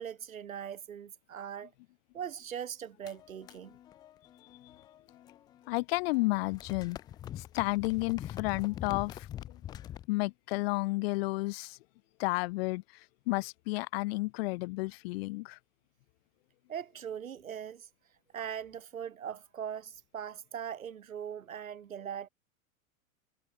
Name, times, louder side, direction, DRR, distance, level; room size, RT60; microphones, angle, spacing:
voice 1, 0.0-1.7 2.1-3.8 16.7-17.9 18.3-22.3, right 8 dB, 75° right, 1.3 m, -40 dB
sound 1, 3.0-5.7 6.0-10.1, left 11 dB, 10° left, 0.3 m, -45 dB
voice 2, 5.7-7.0 7.4-9.6 10.1-11.8 12.2-15.6, left 24 dB, 45° left, 1.0 m, -32 dB
figure-of-eight pair, 90°, 42 cm